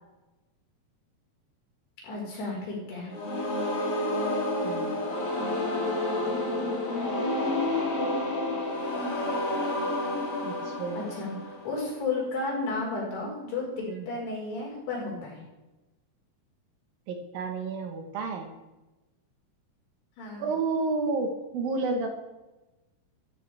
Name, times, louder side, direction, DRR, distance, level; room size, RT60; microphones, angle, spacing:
voice 1, 2.0-3.1 6.2-8.6 10.9-15.4 20.2-20.5, left 3 dB, 75° left, -3 dB, 6.7 m, -33 dB
sound 1, 3.1-12.0, left 1 dB, 35° left, 3.6 m, -30 dB
voice 2, 4.6-4.9 10.4-11.1 13.9-14.1 17.1-18.5 20.4-22.1, right 3 dB, 65° right, 4 dB, 2.8 m, -31 dB
14.0 x 13.5 x 3.4 m, 1.0 s
omnidirectional pair, 4.7 m